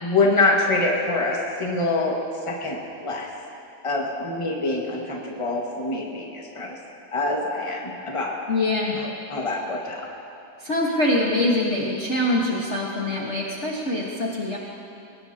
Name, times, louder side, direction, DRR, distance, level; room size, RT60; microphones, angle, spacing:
voice 1, 0.0-2.2 2.5-3.3 3.8-6.7 7.1-8.3 8.9-10.1, left 2 dB, 25° left, -2 dB, 0.6 m, -25 dB
voice 2, 8.5-9.0 10.6-14.6, left 1 dB, 85° left, -4 dB, 0.6 m, -24 dB
21.5 x 18.5 x 2.8 m, 2.6 s
omnidirectional pair, 3.6 m